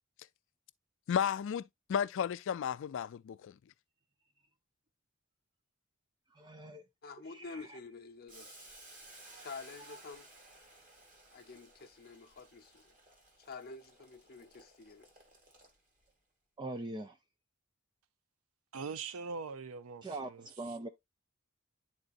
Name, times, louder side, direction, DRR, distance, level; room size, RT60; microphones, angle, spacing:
voice 1, 1.1-3.6, left 8 dB, 65° left, 0.3 m, -33 dB
voice 2, 6.3-6.8 7.3-7.8 9.3-9.5 16.6-17.2 20.0-20.9, right 2 dB, 20° right, 0.5 m, -42 dB
voice 3, 7.0-8.7 9.4-10.3 11.3-12.9 13.4-15.1, left 4 dB, 45° left, 0.8 m, -49 dB
Boiling, 8.3-16.1, right 2 dB, 40° right, 2.1 m, -57 dB
voice 4, 18.7-20.8, right 5 dB, 80° right, 0.5 m, -42 dB
10.5 x 3.9 x 2.4 m
head